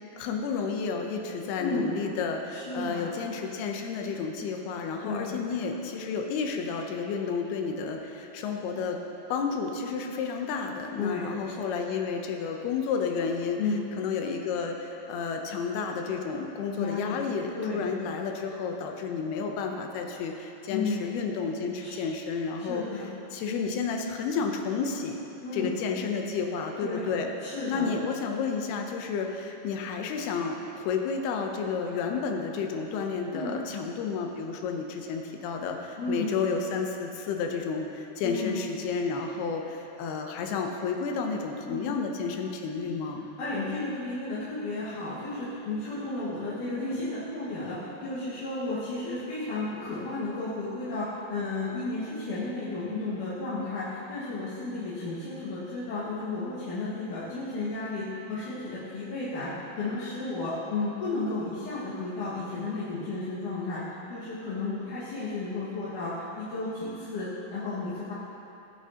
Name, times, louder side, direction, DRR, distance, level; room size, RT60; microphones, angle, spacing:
voice 1, 0.2-9.0 9.3-13.6 14.0-25.2 25.5-27.3 27.7-43.3, left 5 dB, 85° left, 3 dB, 2.7 m, -31 dB
voice 2, 1.6-1.9 2.5-3.1 5.0-5.3 11.0-11.6 13.6-13.9 16.8-17.2 17.6-17.9 20.7-21.1 21.8-22.0 22.7-23.1 25.4-25.7 26.8-27.1 27.4-27.9 33.3-33.6 36.0-36.3 38.2-38.6 41.7-41.9 43.4-68.1, left 3 dB, 60° left, -12 dB, 2.9 m, -33 dB
18.5 x 7.6 x 2.9 m, 2.9 s
omnidirectional pair, 4.5 m